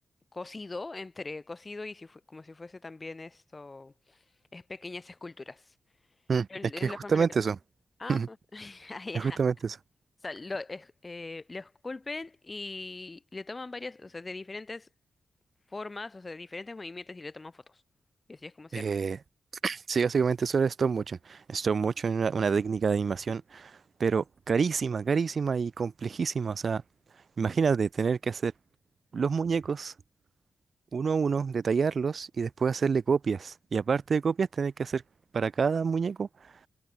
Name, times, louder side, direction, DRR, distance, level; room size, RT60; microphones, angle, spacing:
voice 1, 0.3-4.2 4.5-5.7 6.5-7.3 8.0-9.4 10.2-14.9 15.7-17.8 18.3-19.0, left 3 dB, 30° left, 0.8 m, -41 dB
voice 2, 6.8-7.6 8.1-8.3 9.1-9.8 18.7-19.2 19.6-26.8 27.4-28.5 29.1-29.9 30.9-35.0 35.3-36.3, right 5 dB, 55° right, 0.4 m, -27 dB
cardioid pair, 85°, 0 cm